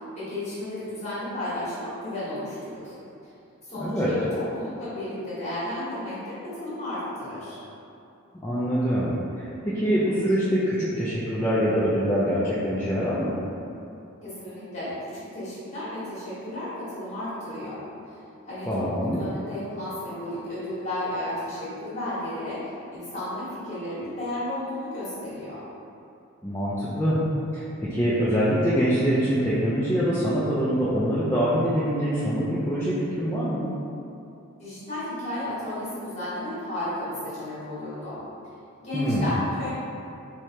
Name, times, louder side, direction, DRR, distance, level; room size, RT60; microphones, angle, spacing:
voice 1, 0.0-2.9 3.7-7.6 14.2-17.8 18.1-18.2 18.4-25.6 34.6-38.2 38.8-39.7, left 1 dB, 30° left, -11 dB, 1.3 m, -33 dB
voice 2, 3.8-4.1 8.4-13.3 18.7-19.2 26.4-27.2 27.5-33.7 38.9-39.3, equal, 10° left, -10 dB, 0.3 m, -24 dB
4.7 x 2.1 x 2.8 m, 2.7 s
head